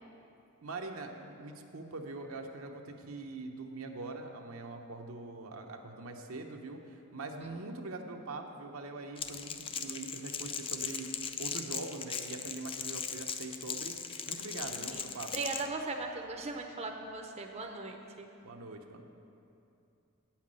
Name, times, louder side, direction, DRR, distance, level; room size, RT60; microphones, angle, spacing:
voice 1, 0.6-11.1 11.4-13.9 14.3-15.5 18.4-19.0, right 3 dB, 80° right, 3 dB, 0.8 m, -43 dB
Crackle, 9.2-15.7, left 7 dB, 25° left, 0.4 m, -39 dB
voice 2, 14.6-15.0 15.3-18.3, right 3 dB, 30° right, 3 dB, 0.6 m, -39 dB
8.9 x 5.8 x 7.5 m, 2.7 s
head